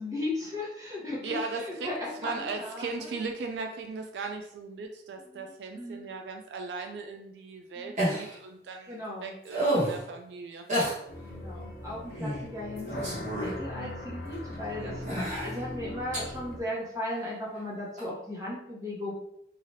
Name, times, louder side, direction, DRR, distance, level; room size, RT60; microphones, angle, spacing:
voice 1, 0.0-3.1 5.2-6.1 7.7-8.1 8.9-9.4 11.3-19.1, left 1 dB, 20° right, -5 dB, 0.9 m, -37 dB
voice 2, 1.2-1.9 2.2-10.6 14.8-15.1, right 4 dB, 70° right, 4 dB, 0.3 m, -38 dB
sound 1, 8.0-8.4 9.5-10.0 10.7-11.0 12.2-12.4 12.8-13.6 14.3-14.4 15.0-15.5 16.1-16.2 18.0-18.1, right 1 dB, 40° right, 1.0 m, -29 dB
sound 2, 11.1-16.6, left 1 dB, 60° left, 0.6 m, -40 dB
3.2 x 2.4 x 2.7 m, 0.77 s
head